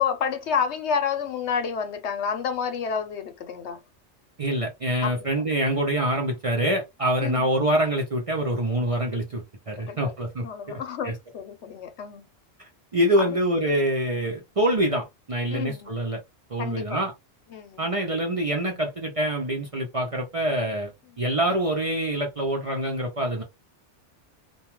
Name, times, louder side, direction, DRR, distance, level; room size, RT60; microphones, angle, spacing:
voice 1, 0.0-3.8 5.0-5.3 7.2-7.5 9.8-10.1 10.4-12.2 13.2-13.3 15.5-15.9 16.6-17.0 17.5-17.8, left 7 dB, 75° left, 0.9 m, -29 dB
voice 2, 4.4-11.1 12.6-16.2 16.5-17.1 17.8-20.9 21.2-23.4, right 1 dB, 40° right, 0.5 m, -25 dB
2.3 x 2.2 x 2.9 m
omnidirectional pair, 1.2 m